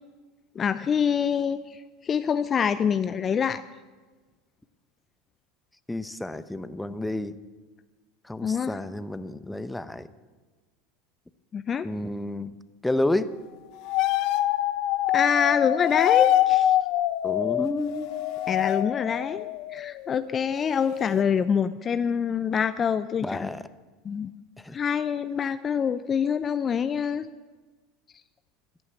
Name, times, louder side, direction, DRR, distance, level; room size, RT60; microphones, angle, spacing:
voice 1, 0.6-1.8 2.0-3.6 8.4-8.8 11.5-11.9 15.1-16.7 18.5-23.5 24.0-24.3 24.7-27.3, left 7 dB, 35° left, 13 dB, 0.5 m, -25 dB
voice 2, 5.9-7.4 8.2-10.1 11.8-12.5 12.8-13.3 17.2-18.1 23.2-23.6 24.6-24.8, left 1 dB, 5° left, 13 dB, 0.8 m, -30 dB
sound 1, 13.8-20.4 20.7-21.2, left 13 dB, 60° left, 0.8 m, -25 dB
14.5 x 11.0 x 8.4 m, 1.3 s
hypercardioid pair, 90°, 0 cm